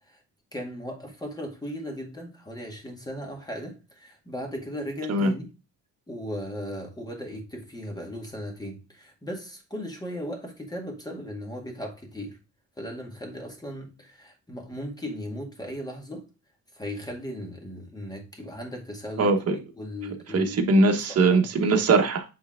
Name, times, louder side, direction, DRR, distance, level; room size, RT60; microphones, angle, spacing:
voice 1, 0.5-5.5 6.1-12.4 12.8-16.3 16.7-19.4 19.7-20.6 21.1-21.4 21.7-21.9, equal, 10° left, 1.9 m, -37 dB
voice 2, 19.2-19.6 20.3-22.2, right 3 dB, 45° right, 1.3 m, -21 dB
8.4 x 3.5 x 3.6 m
cardioid pair, 150°, 34 cm